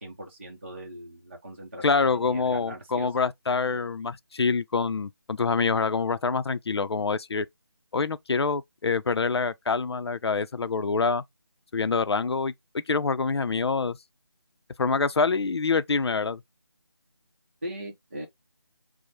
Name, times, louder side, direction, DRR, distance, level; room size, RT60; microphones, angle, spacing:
voice 1, 0.0-3.1 17.6-18.3, right 1 dB, 30° right, 0.6 m, -40 dB
voice 2, 1.8-7.5 7.9-11.2 11.7-14.0 14.8-16.4, left 4 dB, 80° left, 0.4 m, -26 dB
4.7 x 2.0 x 2.7 m
figure-of-eight pair, 175°, 14 cm